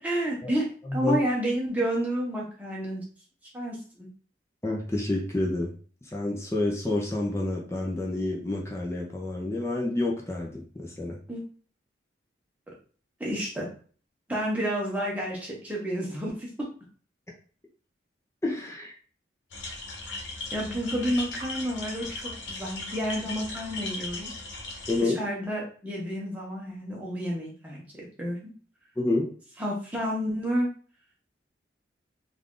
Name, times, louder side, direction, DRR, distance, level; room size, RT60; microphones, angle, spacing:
voice 1, 0.0-3.0 3.5-4.1 11.3-11.4 13.2-13.7 14.3-16.5 20.5-24.3 25.0-27.8 28.2-28.5 29.6-30.7, equal, 10° right, -4 dB, 0.9 m, -30 dB
voice 2, 0.8-1.2 4.6-5.7 6.1-10.5 10.8-11.2 18.4-18.9 24.9-25.2 29.0-29.3, left 2 dB, 15° left, -2 dB, 0.6 m, -28 dB
sound 1, 19.5-25.0, left 2 dB, 75° left, 1.0 m, -37 dB
3.3 x 2.5 x 3.7 m, 0.42 s
head